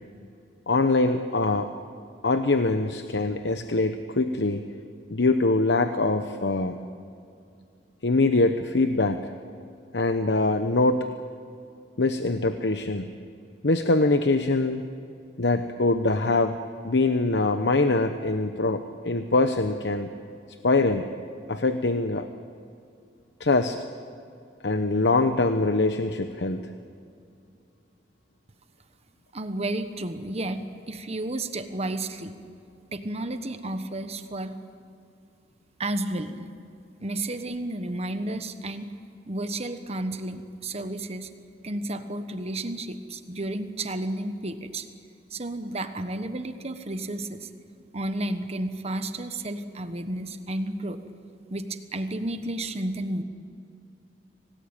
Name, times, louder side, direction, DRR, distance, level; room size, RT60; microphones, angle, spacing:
voice 1, 0.7-1.7 2.2-4.7 5.1-6.8 8.0-9.3 9.9-11.1 12.0-13.1 13.6-14.8 15.4-16.6 16.8-20.1 20.6-21.1 21.5-22.3 23.4-23.8 24.6-26.7, left 2 dB, 80° left, 8 dB, 1.0 m, -23 dB
voice 2, 29.3-32.3 32.9-34.5 35.8-36.5 37.0-38.9 39.3-41.3 41.6-44.9 45.3-47.5 47.9-51.0 51.5-53.2, right 1 dB, 35° right, 9 dB, 1.2 m, -32 dB
26.0 x 18.5 x 9.0 m, 2.4 s
head